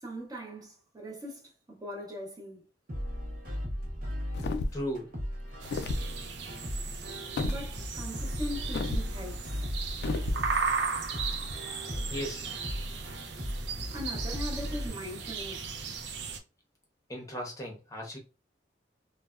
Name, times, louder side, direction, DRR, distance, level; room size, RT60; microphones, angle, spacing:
voice 1, 0.0-2.6 7.4-9.6 13.9-15.7, equal, 20° right, 0.6 m, -40 dB
sound 1, 2.9-14.9, equal, 50° right, 0.9 m, -37 dB
sound 2, 4.3-4.9 5.6-6.1 7.4-7.6 8.7-9.1 10.0-10.4, left 3 dB, 65° left, 0.3 m, -32 dB
voice 2, 4.7-5.1 12.1-12.5 17.1-18.2, equal, 20° left, 0.7 m, -36 dB
sound 3, 5.6-16.4, right 5 dB, 75° right, 0.5 m, -36 dB
3.2 x 2.1 x 2.3 m
head